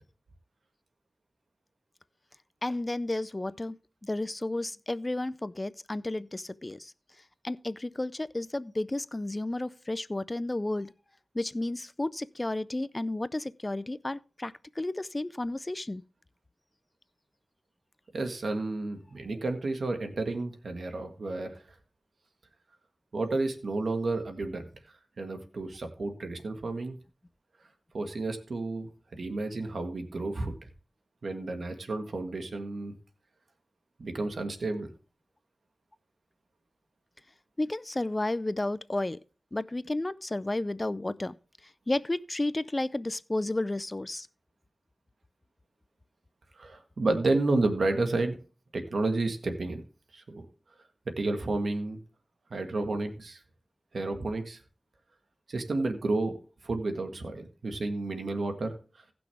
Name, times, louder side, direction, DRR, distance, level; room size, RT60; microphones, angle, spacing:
voice 1, 2.6-3.8 4.0-6.9 7.4-10.9 11.3-16.0 37.6-39.2 39.5-41.4 41.9-44.3, left 2 dB, 30° left, 0.5 m, -32 dB
voice 2, 18.1-21.6 23.1-24.7 25.2-27.0 27.9-30.5 31.2-32.9 34.0-34.9 46.5-48.4 48.7-49.8 50.1-50.5 51.2-52.0 52.5-53.4 53.9-54.6 55.5-56.3 56.6-58.7, right 2 dB, 80° right, 1.6 m, -31 dB
16.5 x 6.0 x 3.5 m
cardioid pair, 50°, 0 cm